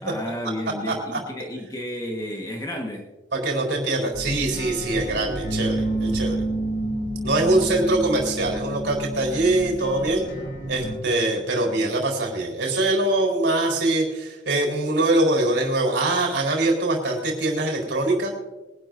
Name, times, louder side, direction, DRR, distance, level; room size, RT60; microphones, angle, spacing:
voice 1, 0.0-3.1 7.6-7.8 10.3-10.5, left 1 dB, 20° left, 0 dB, 1.4 m, -32 dB
voice 2, 3.3-6.4 7.2-10.2 10.7-18.3, right 2 dB, 70° right, 0 dB, 4.2 m, -23 dB
sound 1, 4.1-11.0, right 1 dB, 80° left, 2.9 m, -29 dB
23.5 x 12.0 x 2.6 m, 1.1 s
head